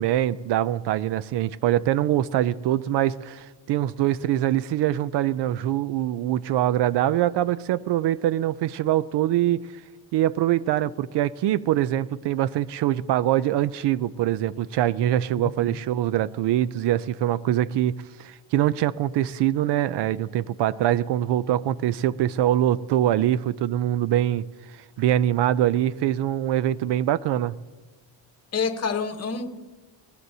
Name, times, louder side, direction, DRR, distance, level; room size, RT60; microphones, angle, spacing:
voice 1, 0.0-9.7 10.1-17.9 18.2-24.4 24.7-27.6, right 12 dB, 65° right, 0.5 m, -23 dB
voice 2, 15.4-15.7 28.5-29.5, left 5 dB, 35° left, 1.0 m, -28 dB
20.5 x 17.5 x 2.7 m
cardioid pair, 150°, 44 cm